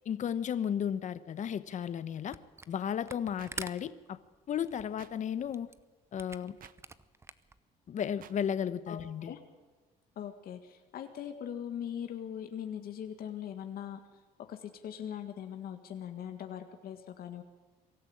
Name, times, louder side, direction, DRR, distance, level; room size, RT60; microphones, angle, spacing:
voice 1, 0.0-2.4 2.7-4.2 4.5-5.7 6.1-6.6 7.9-9.3, left 8 dB, 45° left, 14 dB, 1.0 m, -34 dB
Camera, 2.3-2.8 3.0-7.6, right 3 dB, 15° right, 0.8 m, -46 dB
sound 1, 3.4-3.5 5.0-5.1 6.6-6.7 8.2-8.3, right 10 dB, 55° right, 1.0 m, -52 dB
voice 2, 8.9-9.4 10.2-14.0 14.5-17.4, left 9 dB, 60° left, 6 dB, 1.8 m, -41 dB
23.5 x 13.5 x 8.8 m, 1.2 s
cardioid pair, 110°, 17 cm